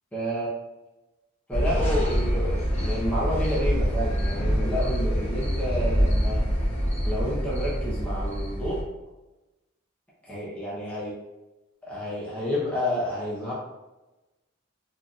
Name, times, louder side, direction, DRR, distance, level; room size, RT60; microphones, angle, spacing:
voice 1, 0.1-0.5 1.5-6.4 7.0-8.8 10.3-11.2 11.8-13.5, equal, 5° left, -8 dB, 0.9 m, -30 dB
sound 1, 1.5-8.8, equal, 35° left, 0.9 m, -25 dB
3.9 x 3.0 x 2.5 m, 1.1 s
head